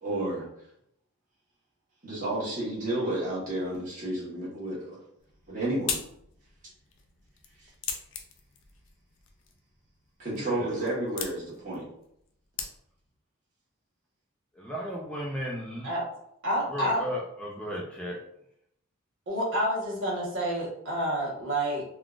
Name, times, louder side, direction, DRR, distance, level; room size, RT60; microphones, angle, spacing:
voice 1, 0.0-0.5 2.0-5.0 5.5-6.0 7.6-7.7 10.2-11.9, right 1 dB, 35° right, -7 dB, 1.2 m, -31 dB
sound 1, 5.2-13.2, left 7 dB, 65° left, 0.4 m, -41 dB
voice 2, 10.3-11.2 14.5-15.9 16.6-18.2, equal, 5° left, -4 dB, 0.4 m, -35 dB
voice 3, 16.4-17.0 19.3-21.8, equal, 65° right, -4 dB, 1.1 m, -28 dB
3.6 x 2.3 x 2.4 m, 0.74 s
head